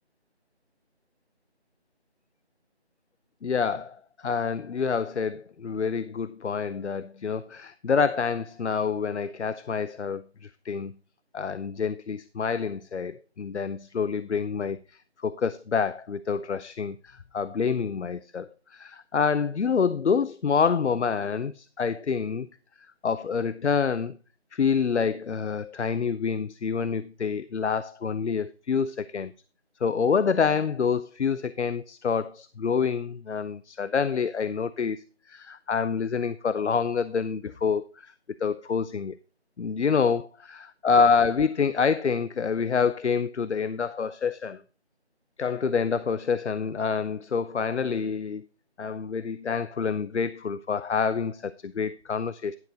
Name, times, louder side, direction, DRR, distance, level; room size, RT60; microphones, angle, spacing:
voice 1, 3.4-3.9 4.2-10.9 11.3-14.8 15.2-22.5 23.0-24.2 24.5-29.3 29.8-35.0 35.3-38.1 38.4-39.2 39.6-44.6 45.4-48.4 48.8-52.6, left 6 dB, 90° left, 0.6 m, -27 dB
11.0 x 6.7 x 3.9 m
figure-of-eight pair, 175°, 33 cm